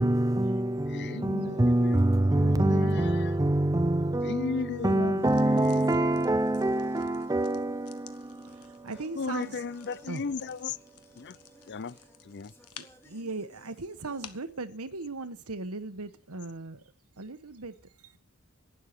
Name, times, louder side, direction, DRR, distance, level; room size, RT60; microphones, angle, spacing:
voice 1, 0.0-8.9 11.6-11.7, right 1 dB, 15° right, 0.6 m, -26 dB
voice 2, 0.9-2.0 2.3-3.3 4.2-5.4 5.7-5.8 9.2-10.8 11.2-11.4 11.7-12.0 12.2-12.5, left 5 dB, 50° left, 0.6 m, -35 dB
sound 1, 4.7-14.4, equal, 10° left, 1.9 m, -60 dB
sound 2, 5.2-14.6, left 10 dB, 80° left, 1.3 m, -54 dB
voice 3, 8.4-9.6 10.1-10.2 12.8-16.8 17.2-17.8 18.0-18.1, right 3 dB, 80° right, 1.4 m, -38 dB
11.5 x 9.5 x 6.8 m
head